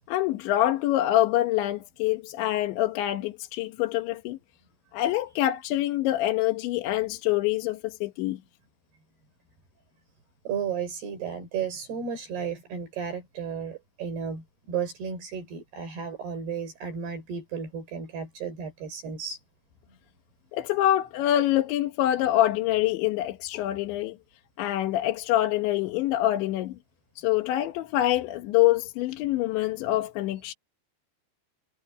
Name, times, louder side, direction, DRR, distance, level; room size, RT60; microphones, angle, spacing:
voice 1, 0.1-4.4 4.9-8.4 20.5-24.2 24.6-26.8 27.2-30.5, left 14 dB, 85° left, 3.7 m, -25 dB
voice 2, 10.5-19.4, right 7 dB, 60° right, 6.9 m, -33 dB
omnidirectional pair, 5.1 m